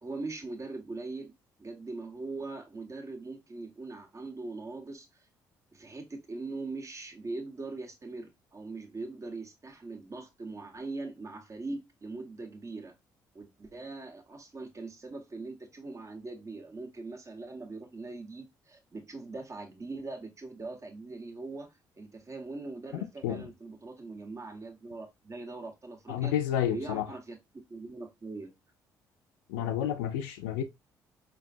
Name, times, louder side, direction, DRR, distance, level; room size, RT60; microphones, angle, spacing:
voice 1, 0.0-1.3 1.6-5.1 5.7-13.0 13.3-26.3 26.7-27.4 27.7-28.5, right 3 dB, 35° right, 1.4 m, -41 dB
voice 2, 26.1-27.0 29.5-30.6, left 10 dB, 85° left, 0.5 m, -30 dB
4.8 x 3.0 x 2.5 m
hypercardioid pair, 55°, 9 cm